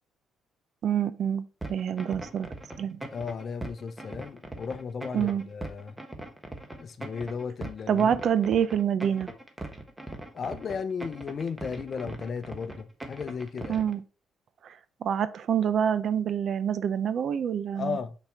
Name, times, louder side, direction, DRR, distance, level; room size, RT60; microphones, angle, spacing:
voice 1, 0.8-2.5 2.8-3.0 5.1-5.4 7.9-9.3 13.7-14.0 14.6-18.0, right 8 dB, 60° right, 0.5 m, -27 dB
sound 1, 1.6-13.9, right 2 dB, 10° right, 1.2 m, -40 dB
voice 2, 3.1-6.0 6.8-8.2 10.3-13.8 17.7-18.2, left 5 dB, 45° left, 0.7 m, -35 dB
5.7 x 4.2 x 4.4 m
cardioid pair, 100°, 0 cm